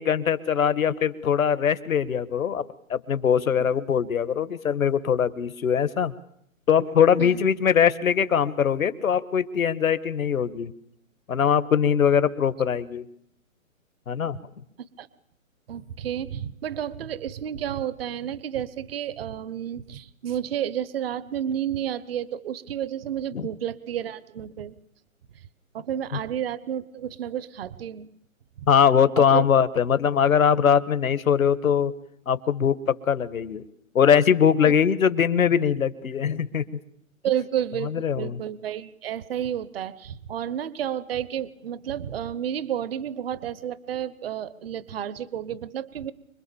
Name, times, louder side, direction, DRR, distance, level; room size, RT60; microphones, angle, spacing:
voice 1, 0.0-2.6 2.9-6.1 6.7-10.7 11.3-13.0 14.1-14.4 23.3-23.5 28.7-31.9 32.3-33.6 33.9-36.6 38.0-38.4, left 7 dB, 75° left, 14 dB, 1.6 m, -21 dB
voice 2, 15.7-24.7 25.7-28.1 28.6-28.7 29.2-29.5 34.6-34.7 37.2-46.1, right 10 dB, 45° right, 18 dB, 1.1 m, -31 dB
25.5 x 23.0 x 7.0 m, 0.74 s
hypercardioid pair, 150°, 41 cm